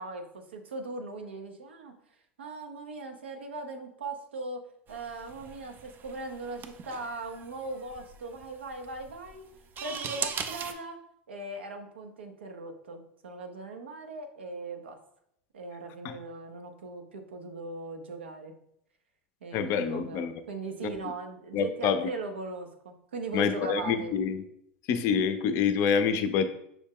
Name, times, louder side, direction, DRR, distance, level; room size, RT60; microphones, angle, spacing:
voice 1, 0.0-2.0 2.4-9.5 9.8-11.0 11.3-15.0 15.5-18.5 19.4-24.1, right 3 dB, 90° right, 5 dB, 0.6 m, -39 dB
sound 1, 4.9-10.7, right 6 dB, 35° right, 0.4 m, -40 dB
voice 2, 19.5-20.3 20.8-21.1 21.5-22.1 23.3-24.4 24.9-26.4, left 6 dB, 50° left, 10 dB, 0.5 m, -27 dB
6.0 x 2.1 x 3.6 m, 0.73 s
hypercardioid pair, 95°, 6 cm